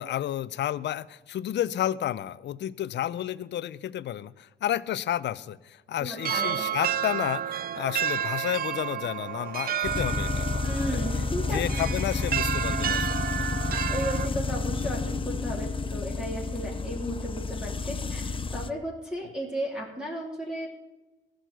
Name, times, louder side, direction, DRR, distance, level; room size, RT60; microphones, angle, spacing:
voice 1, 0.0-10.7 11.4-13.5, left 11 dB, 65° left, 19 dB, 0.6 m, -31 dB
voice 2, 6.0-6.6 10.6-11.6 12.7-12.8 13.7-20.7, equal, 5° right, -3 dB, 3.1 m, -34 dB
sound 1, 6.2-14.3, right 9 dB, 50° right, 0.5 m, -31 dB
sound 2, 9.8-18.7, left 4 dB, 25° left, 0.7 m, -30 dB
14.5 x 6.5 x 9.2 m, 1.1 s
cardioid pair, 90°, 20 cm